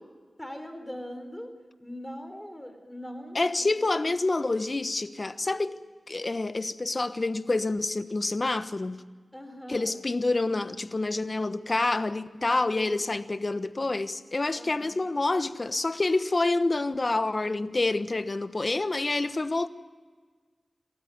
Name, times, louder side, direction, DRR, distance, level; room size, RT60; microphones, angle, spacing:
voice 1, 0.4-1.5 1.8-3.7 9.3-10.0 12.8-13.2 14.6-15.0, equal, 10° left, 3.6 m, -41 dB
voice 2, 3.3-5.8 6.1-9.0 9.7-19.7, left 2 dB, 40° left, 1.2 m, -27 dB
27.0 x 13.5 x 9.6 m
cardioid pair, 50°, 0 cm